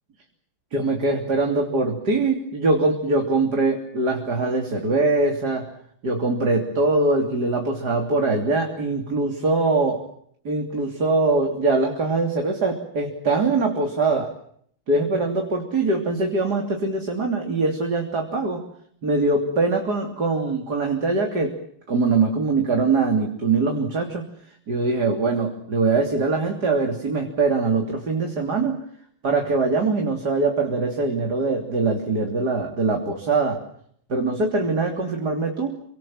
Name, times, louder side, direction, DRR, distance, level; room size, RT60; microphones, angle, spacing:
voice 1, 0.7-5.7 6.0-10.0 10.5-14.3 14.9-18.6 19.0-21.6 21.9-24.2 24.7-28.8 29.2-33.6 34.1-35.8, right 3 dB, 50° right, 2 dB, 3.7 m, -22 dB
29.5 x 25.0 x 7.3 m, 0.66 s
omnidirectional pair, 2.2 m